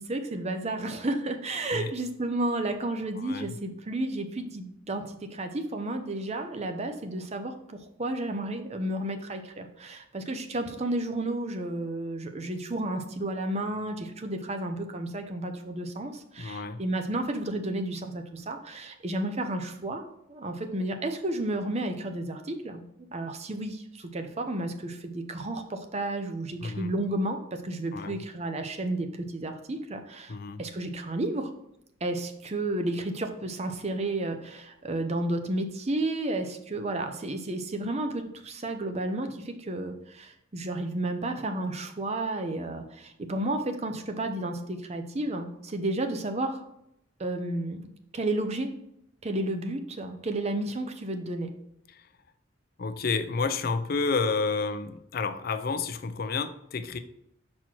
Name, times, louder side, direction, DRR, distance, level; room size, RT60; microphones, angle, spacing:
voice 1, 0.0-22.8 23.1-31.5 32.0-46.6 47.2-48.7 49.2-51.5, right 1 dB, 35° right, 6 dB, 0.6 m, -32 dB
voice 2, 3.2-3.5 16.4-16.8 26.6-26.9 27.9-28.2 30.3-30.6 51.9-52.0 52.8-57.0, left 4 dB, 50° left, 10 dB, 0.5 m, -30 dB
6.0 x 4.3 x 4.5 m, 0.77 s
head